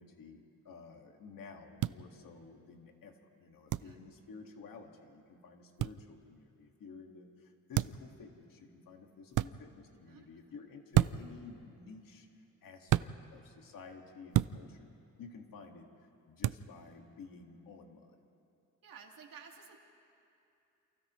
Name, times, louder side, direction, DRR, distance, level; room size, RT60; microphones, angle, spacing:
voice 1, 0.0-12.3 12.6-14.9 15.2-18.1, left 4 dB, 90° left, 3 dB, 2.1 m, -52 dB
sound 1, 1.8-2.0 3.7-3.9 5.8-6.0 7.7-8.1 9.3-9.5 10.9-11.3 12.9-13.1 14.3-14.6 16.4-16.6, right 14 dB, 65° right, 0.4 m, -29 dB
voice 2, 18.8-19.8, right 6 dB, 90° right, 1 dB, 2.4 m, -53 dB
29.5 x 28.0 x 3.2 m, 2.8 s
wide cardioid pair, 160°, 33 cm